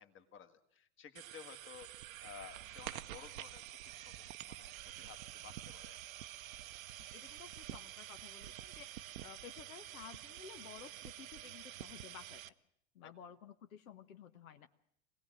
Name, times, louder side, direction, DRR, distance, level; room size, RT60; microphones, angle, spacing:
voice 1, 0.0-6.0 13.0-13.1, left 8 dB, 30° left, 8 dB, 1.7 m, -55 dB
sound 1, 1.2-12.5, right 13 dB, 85° right, 0.8 m, -48 dB
voice 2, 7.0-8.9 9.2-12.5 12.9-14.7, left 8 dB, 80° left, 9 dB, 1.2 m, -54 dB
22.0 x 17.5 x 7.5 m, 0.69 s
hypercardioid pair, 110°, 40 cm